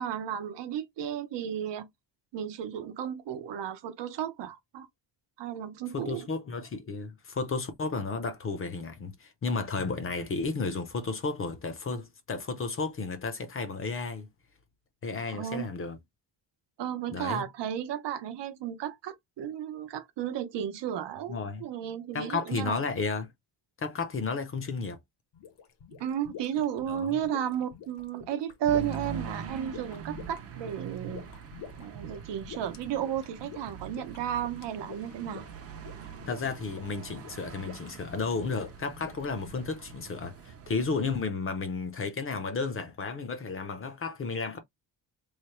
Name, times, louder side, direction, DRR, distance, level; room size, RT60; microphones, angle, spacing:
voice 1, 0.0-1.9 2.3-4.9 5.4-6.3 15.3-15.7 16.8-22.8 26.0-31.2 31.8-35.5, right 9 dB, 70° right, 0.7 m, -33 dB
voice 2, 5.9-14.3 15.0-16.0 17.1-17.4 21.3-21.6 22.1-23.3 23.8-25.0 26.9-27.2 36.3-44.6, left 4 dB, 30° left, 0.5 m, -33 dB
sound 1, 25.3-40.0, left 8 dB, 70° left, 1.0 m, -48 dB
sound 2, 28.7-41.2, right 7 dB, 35° right, 0.5 m, -43 dB
3.2 x 2.1 x 4.2 m
cardioid pair, 175°, 44 cm